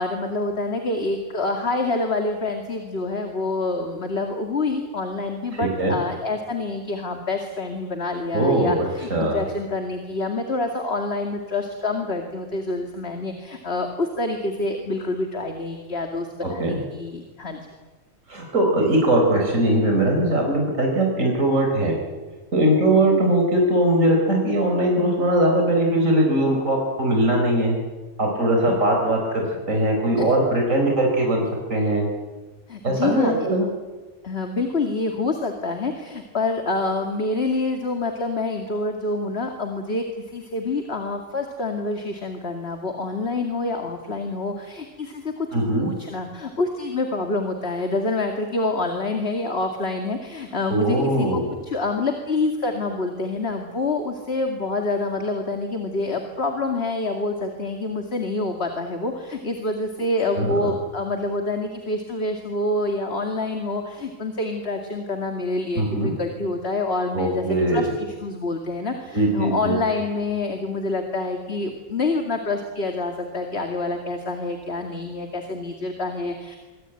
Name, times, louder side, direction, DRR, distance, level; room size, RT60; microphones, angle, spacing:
voice 1, 0.0-17.6 23.1-23.2 28.7-28.8 30.2-30.3 32.7-33.5 34.2-45.5 45.8-76.6, left 2 dB, 50° left, 4 dB, 2.6 m, -27 dB
voice 2, 5.5-5.9 8.3-9.5 16.4-16.7 18.3-22.0 22.5-27.8 28.2-31.4 31.7-32.1 32.8-33.7 45.5-45.9 50.7-51.5 60.4-60.5 65.7-66.1 67.1-67.9 69.1-69.8, right 1 dB, 80° right, 1 dB, 4.9 m, -20 dB
25.5 x 24.0 x 9.1 m, 1.3 s
omnidirectional pair, 1.3 m